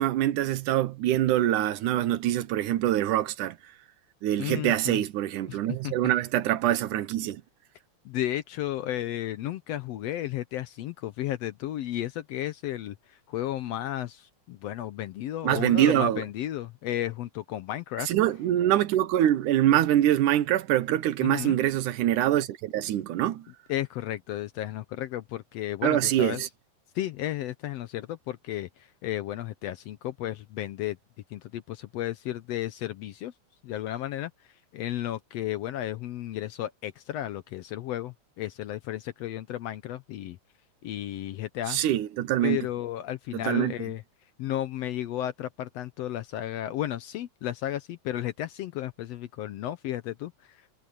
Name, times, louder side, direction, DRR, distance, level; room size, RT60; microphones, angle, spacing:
voice 1, 0.0-3.6 4.2-7.4 15.4-16.2 18.1-23.5 25.8-26.5 41.7-42.6 43.4-43.7, right 12 dB, 85° right, 2.5 m, -24 dB
voice 2, 4.4-5.0 5.5-5.6 5.8-6.1 8.0-18.1 21.2-21.6 23.7-26.4 26.9-31.0 31.3-33.3 33.6-34.3 34.7-40.4 40.8-41.8 42.4-44.0 44.4-50.6, left 13 dB, 70° left, 1.6 m, -33 dB
omnidirectional pair, 3.5 m